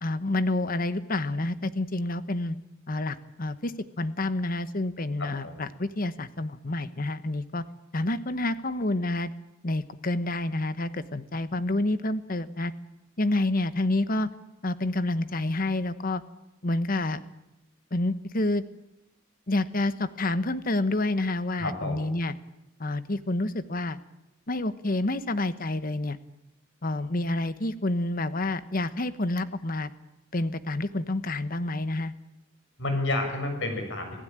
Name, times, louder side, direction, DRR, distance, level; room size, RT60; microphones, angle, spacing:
voice 1, 0.0-2.6 2.9-7.6 7.9-9.3 9.6-12.7 13.2-14.3 14.6-16.2 16.6-17.2 17.9-18.6 19.5-22.3 22.8-24.0 24.5-26.2 26.8-29.9 30.3-32.1, left 2 dB, 45° left, 13 dB, 1.2 m, -28 dB
voice 2, 5.2-5.6 21.6-22.0 32.8-34.2, left 2 dB, 60° left, 5 dB, 6.9 m, -30 dB
26.0 x 16.5 x 8.9 m, 0.91 s
head